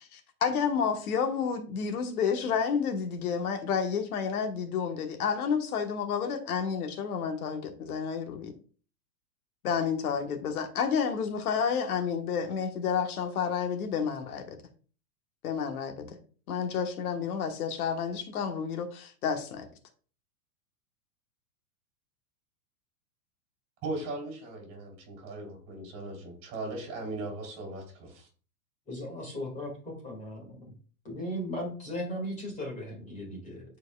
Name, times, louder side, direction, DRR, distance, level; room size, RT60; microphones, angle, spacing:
voice 1, 0.0-8.5 9.6-14.6 15.4-16.1 16.5-19.7, left 6 dB, 65° left, 1.3 m, -30 dB
voice 2, 23.8-28.3, right 2 dB, 30° right, 3.5 m, -38 dB
voice 3, 28.9-30.8 31.0-33.6, equal, 15° left, 2.0 m, -37 dB
11.0 x 4.6 x 2.3 m
supercardioid pair, 155°, 47 cm